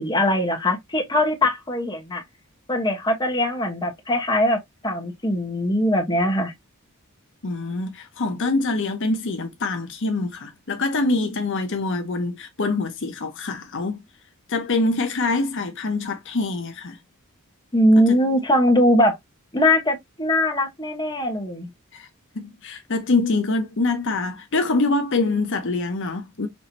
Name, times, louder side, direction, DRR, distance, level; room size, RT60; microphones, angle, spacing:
voice 1, 0.0-2.2 2.7-6.5 17.7-19.1 19.5-21.7, left 1 dB, 20° left, 1.3 m, -21 dB
voice 2, 7.4-14.0 14.5-17.0 18.0-18.2 21.9-22.1 22.3-26.5, left 3 dB, 60° left, 0.8 m, -25 dB
5.5 x 3.1 x 2.9 m
head